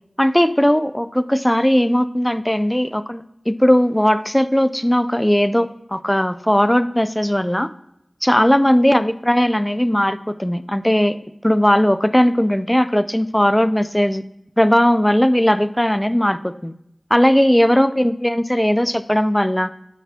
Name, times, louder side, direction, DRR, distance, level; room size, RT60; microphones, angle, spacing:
voice 1, 0.2-7.7 8.2-11.2 11.4-14.2 14.6-16.7 17.1-19.7, equal, 10° left, 14 dB, 0.4 m, -17 dB
8.9 x 4.8 x 3.6 m, 0.79 s
wide cardioid pair, 55°, 0 cm